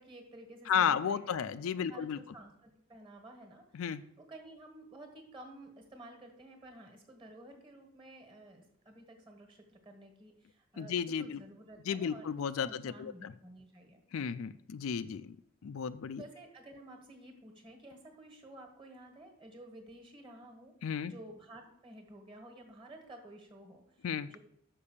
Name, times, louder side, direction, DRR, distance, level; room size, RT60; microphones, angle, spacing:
voice 1, 0.0-3.6 4.2-12.3 12.6-14.0 16.1-24.4, right 1 dB, 25° right, 3 dB, 1.5 m, -52 dB
voice 2, 0.7-2.2 3.7-4.0 10.8-11.4 11.9-13.3 14.1-15.4 15.6-16.2 20.8-21.1 24.0-24.3, left 7 dB, 70° left, 13 dB, 0.4 m, -33 dB
6.7 x 5.2 x 7.1 m, 0.73 s
head